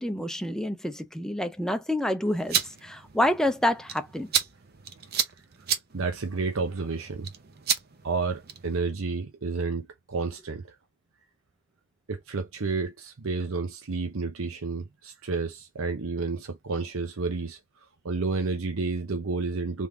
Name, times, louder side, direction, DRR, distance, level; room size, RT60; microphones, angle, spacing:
voice 1, 0.0-4.3, left 1 dB, 5° left, 0.5 m, -28 dB
sound 1, 2.3-8.8, right 8 dB, 50° right, 0.7 m, -33 dB
voice 2, 5.9-7.3 8.0-10.8 12.1-17.6 18.0-19.9, right 4 dB, 85° right, 0.8 m, -30 dB
3.7 x 3.5 x 3.5 m
head